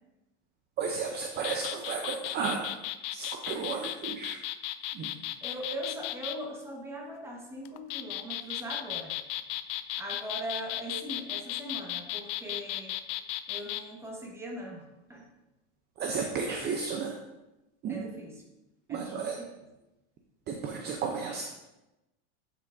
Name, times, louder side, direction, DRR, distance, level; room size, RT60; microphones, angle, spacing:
voice 1, 0.8-2.8 3.1-4.4 4.9-5.1 16.0-17.2 17.8-18.0 18.9-19.4 20.5-21.4, right 5 dB, 30° right, 2 dB, 0.7 m, -33 dB
sound 1, 1.3-6.4 7.6-13.8, left 14 dB, 45° left, 0.4 m, -35 dB
voice 2, 5.4-9.2 10.0-12.9 13.5-15.2 17.9-18.4 18.9-19.4, right 1 dB, 5° right, -1 dB, 1.4 m, -40 dB
10.5 x 5.9 x 2.6 m, 0.97 s
supercardioid pair, 125°, 34 cm